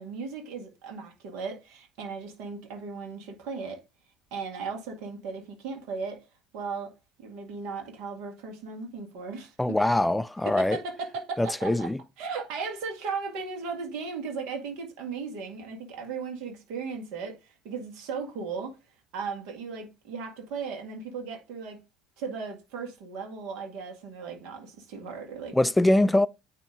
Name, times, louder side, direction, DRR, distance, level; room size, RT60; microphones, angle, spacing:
voice 1, 0.0-3.8 4.3-6.3 6.5-6.9 7.2-9.8 10.4-11.9 12.2-18.8 19.1-21.8 22.2-25.6, right 5 dB, 60° right, 1.9 m, -36 dB
voice 2, 9.6-10.8 11.4-12.0 25.5-26.3, left 1 dB, 10° left, 0.4 m, -23 dB
9.0 x 3.0 x 3.7 m
figure-of-eight pair, 65°, 0 cm